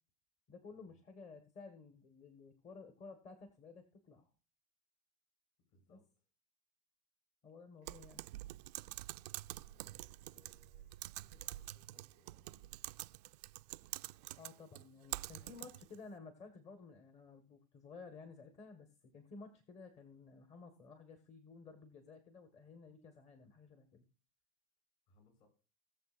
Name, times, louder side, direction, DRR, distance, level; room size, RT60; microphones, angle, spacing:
voice 1, 0.5-4.3 5.9-6.0 7.4-8.2 14.4-24.0, left 4 dB, 35° left, 7 dB, 1.6 m, -54 dB
voice 2, 5.7-6.1 7.8-7.9 9.7-12.7 15.4-15.6 25.1-25.5, left 1 dB, 55° left, 2 dB, 6.6 m, -69 dB
Typing, 7.9-16.0, right 17 dB, 80° right, 0.5 m, -47 dB
20.0 x 7.2 x 2.5 m, 0.35 s
supercardioid pair, 125°, 21 cm